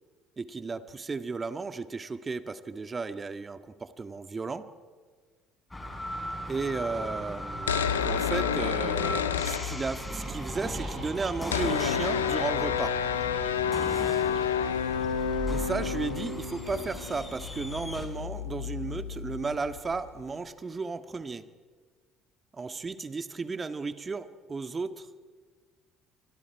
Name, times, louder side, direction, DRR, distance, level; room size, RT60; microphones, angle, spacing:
voice 1, 0.4-4.7 6.4-13.0 15.5-21.5 22.5-25.1, right 4 dB, 30° right, 10 dB, 1.8 m, -34 dB
sound 1, 5.7-18.1, left 1 dB, 15° left, 5.8 m, -38 dB
sound 2, 7.5-10.3 10.5-10.6 10.8-20.2, left 7 dB, 85° left, 1.2 m, -30 dB
sound 3, 10.0-17.0, right 4 dB, 45° right, 6.6 m, -45 dB
29.5 x 25.0 x 4.8 m, 1.5 s
hypercardioid pair, 60°, 0 cm